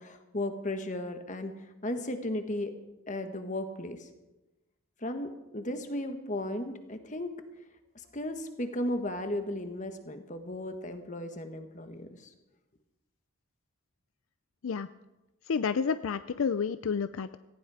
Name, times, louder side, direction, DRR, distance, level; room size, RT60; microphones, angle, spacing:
voice 1, 0.0-2.7 3.1-4.1 5.0-7.3 7.9-12.3, left 1 dB, 35° left, 7 dB, 1.4 m, -35 dB
voice 2, 15.5-17.4, left 6 dB, 65° left, 13 dB, 0.4 m, -30 dB
18.0 x 15.5 x 4.9 m, 1.0 s
head